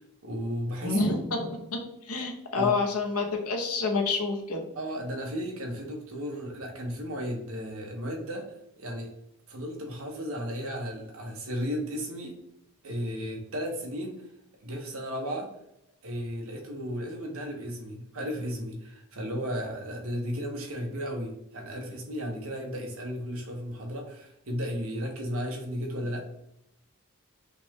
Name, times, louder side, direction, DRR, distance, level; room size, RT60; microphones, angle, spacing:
voice 1, 0.2-1.0 2.5-2.7 4.7-8.5 8.8-9.1 9.5-12.4 12.8-14.2 14.6-15.5 16.0-26.2, equal, 65° right, 1 dB, 1.2 m, -34 dB
voice 2, 0.8-4.6, left 3 dB, 85° left, 1 dB, 1.0 m, -28 dB
5.7 x 2.4 x 3.7 m, 0.77 s
head